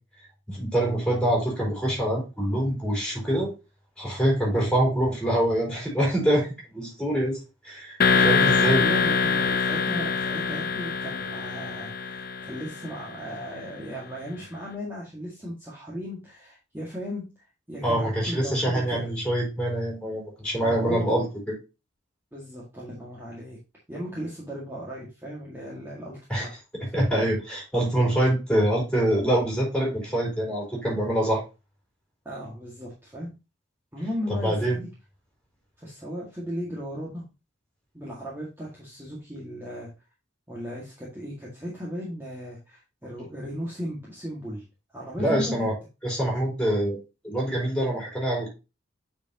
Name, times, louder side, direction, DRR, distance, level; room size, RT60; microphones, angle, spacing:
voice 1, 0.5-3.5 4.0-6.5 6.7-7.4 7.6-8.0 8.2-8.8 17.8-21.2 26.3-26.5 26.7-31.4 34.4-34.8 45.2-45.7 46.0-47.0 47.2-48.5, right 1 dB, 5° left, -3 dB, 4.0 m, -25 dB
sound 1, 8.0-12.9, left 5 dB, 55° left, 0.9 m, -24 dB
voice 2, 8.1-19.1 20.6-21.2 22.3-23.6 23.9-26.5 26.8-26.9 32.3-33.4 33.9-34.9 35.8-37.2 37.9-39.9 40.5-44.6 44.9-45.7, equal, 15° right, -6 dB, 1.8 m, -36 dB
8.6 x 4.6 x 2.8 m, 0.28 s
head